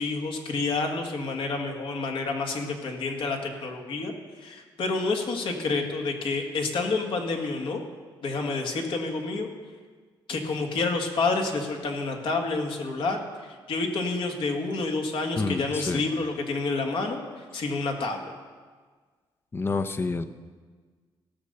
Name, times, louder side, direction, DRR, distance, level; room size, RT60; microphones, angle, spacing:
voice 1, 0.0-4.1 4.4-7.8 8.2-9.5 10.3-18.3, left 3 dB, 65° left, 3 dB, 1.8 m, -29 dB
voice 2, 15.4-16.0 19.5-20.2, left 3 dB, 25° left, 11 dB, 0.6 m, -28 dB
16.0 x 6.7 x 6.8 m, 1.5 s
cardioid pair, 115°, 9 cm